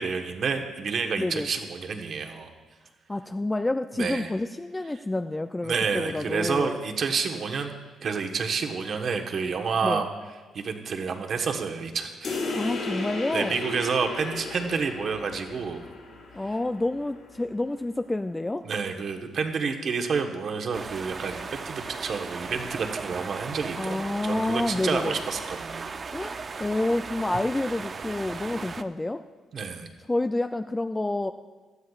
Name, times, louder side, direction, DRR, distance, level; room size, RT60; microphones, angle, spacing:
voice 1, 0.0-2.5 3.9-4.3 5.6-7.7 8.0-10.1 10.5-12.4 13.3-15.8 16.3-16.6 18.6-26.0 29.5-29.9, right 5 dB, 55° right, 4 dB, 1.2 m, -29 dB
voice 2, 1.2-1.5 3.1-6.7 9.8-10.0 12.6-13.6 16.3-18.7 23.8-25.2 26.1-29.2 30.1-31.3, left 2 dB, 15° left, 8 dB, 0.3 m, -28 dB
sound 1, 12.2-17.3, left 3 dB, 65° left, 4.4 m, -35 dB
sound 2, 20.7-28.8, right 4 dB, 40° right, 0.5 m, -37 dB
17.5 x 12.5 x 2.4 m, 1.4 s
cardioid pair, 90°, 0 cm